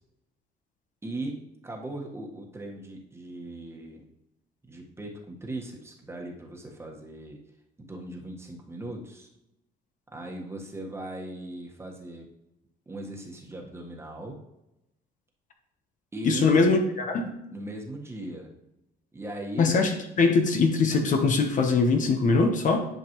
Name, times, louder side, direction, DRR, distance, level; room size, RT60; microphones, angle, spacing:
voice 1, 1.0-1.4 1.6-4.0 4.7-7.4 7.8-9.3 10.1-12.3 12.9-14.4 16.1-16.5 17.5-18.5 19.1-19.8, right 1 dB, 15° right, 0 dB, 1.5 m, -38 dB
voice 2, 16.2-17.4 19.6-22.9, left 4 dB, 50° left, 4 dB, 1.1 m, -22 dB
10.5 x 5.2 x 3.1 m, 0.88 s
cardioid pair, 110°, 17 cm